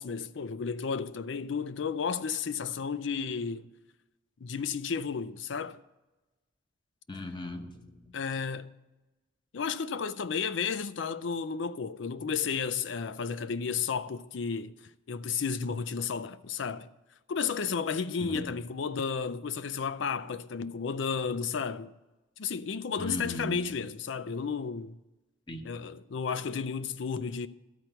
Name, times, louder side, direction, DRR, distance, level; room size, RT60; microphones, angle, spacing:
voice 1, 0.0-3.7 4.4-5.8 8.1-8.7 9.5-14.7 15.1-16.9 17.3-21.9 22.4-25.0 25.6-27.5, left 6 dB, 70° left, 0.5 m, -33 dB
voice 2, 7.1-8.1 18.2-18.5 23.0-23.6 25.5-25.7, left 1 dB, 25° left, 0.8 m, -38 dB
12.5 x 4.4 x 7.9 m
head